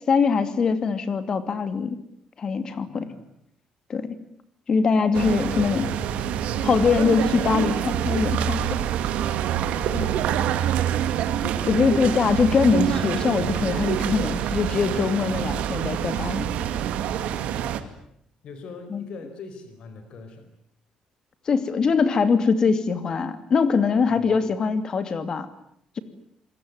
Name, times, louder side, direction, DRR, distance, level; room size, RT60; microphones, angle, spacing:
voice 1, 0.1-2.0 2.4-3.1 3.9-4.2 4.7-5.9 6.6-8.7 9.9-10.1 11.4-16.4 18.9-19.0 21.5-25.5, left 5 dB, 35° left, 11 dB, 2.6 m, -22 dB
voice 2, 2.9-3.3 9.5-10.5 14.0-14.2 17.2-17.7 18.4-20.5 24.1-24.3, left 4 dB, 50° left, 8 dB, 4.5 m, -42 dB
sound 1, 5.1-17.8, right 10 dB, 85° right, 2.5 m, -26 dB
27.5 x 22.5 x 9.5 m, 0.71 s
cardioid pair, 170°, 2 cm